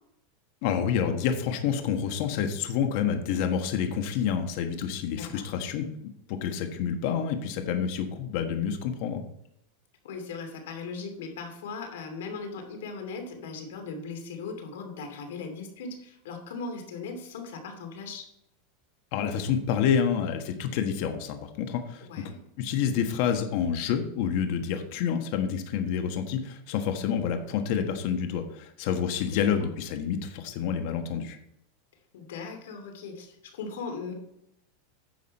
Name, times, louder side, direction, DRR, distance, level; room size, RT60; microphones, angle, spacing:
voice 1, 0.6-5.8 6.3-9.2 19.1-22.1 22.6-31.4, left 7 dB, 55° left, 6 dB, 1.4 m, -28 dB
voice 2, 5.2-5.5 10.0-18.2 22.0-22.4 29.3-29.4 32.1-34.1, left 4 dB, 80° left, 4 dB, 2.7 m, -38 dB
10.5 x 7.2 x 4.2 m, 0.78 s
supercardioid pair, 145°, 0 cm